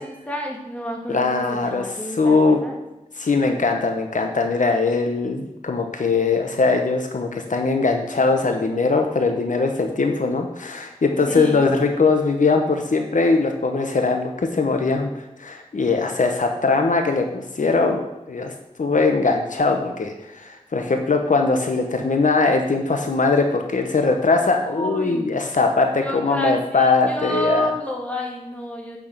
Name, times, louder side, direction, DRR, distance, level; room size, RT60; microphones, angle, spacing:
voice 1, 0.0-2.8 11.2-11.7 24.6-25.3 26.0-29.0, equal, 10° left, -1 dB, 2.7 m, -29 dB
voice 2, 1.1-1.8 2.2-2.6 3.2-18.5 18.8-27.7, left 3 dB, 70° left, 4 dB, 1.1 m, -21 dB
9.1 x 6.3 x 6.7 m, 0.94 s
wide cardioid pair, 70°, 14 cm